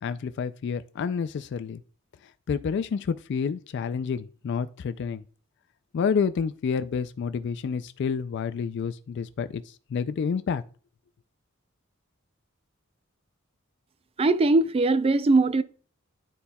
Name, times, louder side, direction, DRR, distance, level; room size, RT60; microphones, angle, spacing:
voice 1, 0.0-1.8 2.5-5.2 5.9-10.6, left 6 dB, 60° left, 0.3 m, -29 dB
voice 2, 14.2-15.6, right 2 dB, 30° right, 0.3 m, -20 dB
11.5 x 4.1 x 2.2 m
head